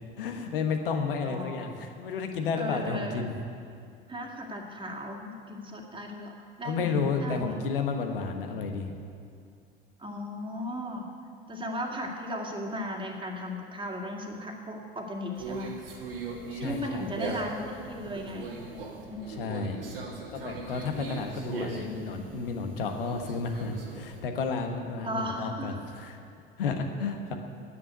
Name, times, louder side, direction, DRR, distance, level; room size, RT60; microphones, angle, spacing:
voice 1, 0.2-3.3 6.6-9.0 16.5-17.1 19.4-19.8 20.3-26.2 26.6-27.3, left 4 dB, 70° left, 5 dB, 1.3 m, -32 dB
voice 2, 1.2-1.8 2.5-3.4 4.1-7.6 10.0-11.0 11.5-15.8 16.6-18.5 19.1-19.2 25.0-25.8, equal, 15° right, 1 dB, 2.1 m, -36 dB
Conversation, 15.3-24.2, right 3 dB, 75° right, 1.9 m, -39 dB
9.9 x 8.3 x 9.6 m, 2.4 s
figure-of-eight pair, 70°, 29 cm